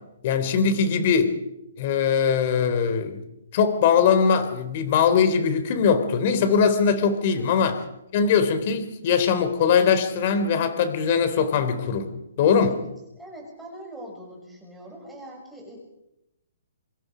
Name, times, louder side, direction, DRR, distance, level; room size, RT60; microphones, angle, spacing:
voice 1, 0.2-1.3 1.8-3.2 3.5-7.8 8.1-12.1 12.4-12.8, left 6 dB, 35° left, 9 dB, 3.7 m, -21 dB
voice 2, 7.3-7.7 12.7-12.9 13.2-15.8, right 1 dB, 5° right, -2 dB, 7.0 m, -42 dB
26.5 x 25.0 x 5.2 m, 0.87 s
hypercardioid pair, 165°, 0 cm